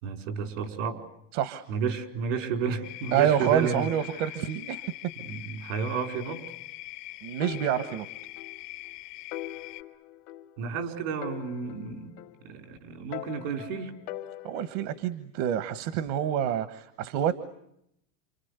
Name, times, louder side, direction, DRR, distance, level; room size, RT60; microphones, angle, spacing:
voice 1, 0.0-1.0 1.7-3.9 5.2-6.4 10.6-12.2 12.4-13.9, right 6 dB, 85° right, 7 dB, 4.9 m, -32 dB
voice 2, 1.3-1.6 3.1-4.9 7.2-8.1 14.4-17.3, right 10 dB, 65° right, 12 dB, 1.5 m, -27 dB
sound 1, 2.8-9.8, left 19 dB, 90° left, 2.1 m, -43 dB
sound 2, 7.4-8.6 8.9-9.0 9.3-10.8 11.2-12.7 13.1-15.0, left 14 dB, 60° left, 1.2 m, -42 dB
29.0 x 25.0 x 8.2 m, 0.78 s
supercardioid pair, 135°, 37 cm